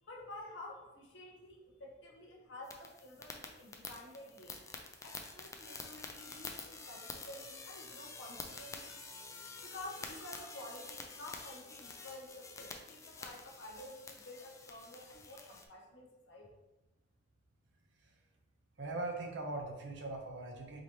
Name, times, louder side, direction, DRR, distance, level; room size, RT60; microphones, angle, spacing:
voice 1, 0.0-4.6 5.0-9.0 9.5-16.5, left 1 dB, 70° left, -1 dB, 0.9 m, -51 dB
sound 1, 2.6-15.7, left 3 dB, 15° left, 0.4 m, -48 dB
voice 2, 18.8-20.8, right 2 dB, 70° right, 2 dB, 0.7 m, -40 dB
4.9 x 2.9 x 2.9 m, 1.1 s
head